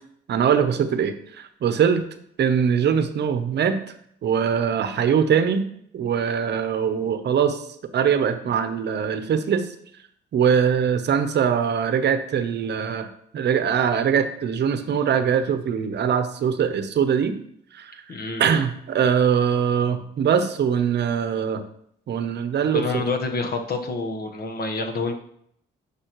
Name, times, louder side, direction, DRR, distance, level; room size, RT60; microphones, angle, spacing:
voice 1, 0.3-2.0 2.4-3.8 4.2-5.7 5.9-7.7 7.9-9.7 10.3-13.1 13.3-17.3 17.7-18.0 18.4-21.6 22.1-23.1, right 7 dB, 60° right, 10 dB, 0.8 m, -22 dB
voice 2, 18.1-18.4 22.7-25.1, left 3 dB, 50° left, 3 dB, 1.2 m, -27 dB
10.0 x 5.5 x 3.1 m, 0.69 s
cardioid pair, 90°, 20 cm